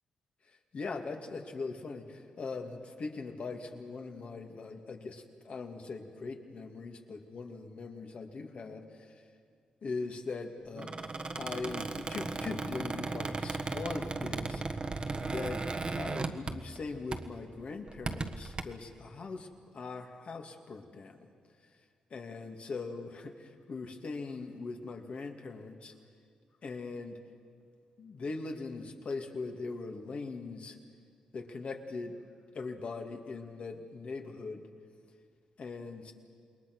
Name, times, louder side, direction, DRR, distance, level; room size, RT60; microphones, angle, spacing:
voice 1, 0.5-9.2 9.8-10.9 11.4-14.6 15.2-15.6 15.9-19.5 19.7-21.3 22.1-25.9 26.6-27.2 28.0-30.8 31.3-32.2 32.5-34.7 35.6-36.1, left 4 dB, 60° left, 4 dB, 2.5 m, -41 dB
Squeak, 10.7-16.8 17.1-17.4 17.9-18.6, right 3 dB, 40° right, 1.4 m, -36 dB
28.0 x 21.0 x 6.3 m, 2.2 s
supercardioid pair, 55°, 2 cm